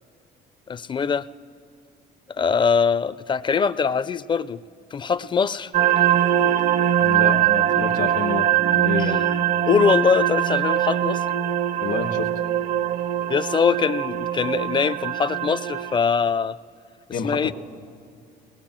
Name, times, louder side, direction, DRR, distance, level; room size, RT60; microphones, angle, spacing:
voice 1, 0.7-1.3 2.3-4.6 4.9-5.7 6.4-6.5 9.0-9.3 9.7-11.3 13.3-16.6 17.2-17.5, left 6 dB, 30° left, 16 dB, 0.4 m, -22 dB
sound 1, 5.7-16.0, right 11 dB, 45° right, 0.5 m, -22 dB
voice 2, 7.0-9.3 11.8-12.3 17.1-17.5, left 7 dB, 70° left, 7 dB, 1.4 m, -29 dB
22.0 x 19.0 x 7.5 m, 2.3 s
cardioid pair, 110°, 17 cm